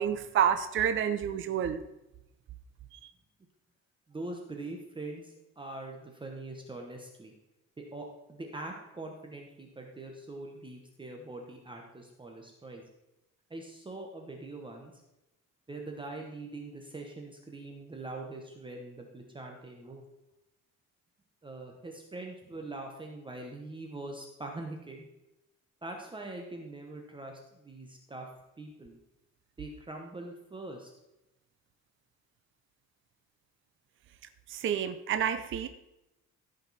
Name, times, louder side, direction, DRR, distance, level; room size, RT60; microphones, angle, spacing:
voice 1, 0.0-1.8 2.9-3.1 34.5-35.7, right 9 dB, 40° right, 10 dB, 0.5 m, -29 dB
voice 2, 4.1-7.3 7.8-12.8 13.5-14.9 15.7-20.0 21.4-25.1 25.8-28.3 28.6-29.0 29.6-30.9, right 2 dB, 15° right, 1 dB, 1.0 m, -43 dB
14.5 x 5.2 x 4.1 m, 0.93 s
cardioid pair, 145°, 31 cm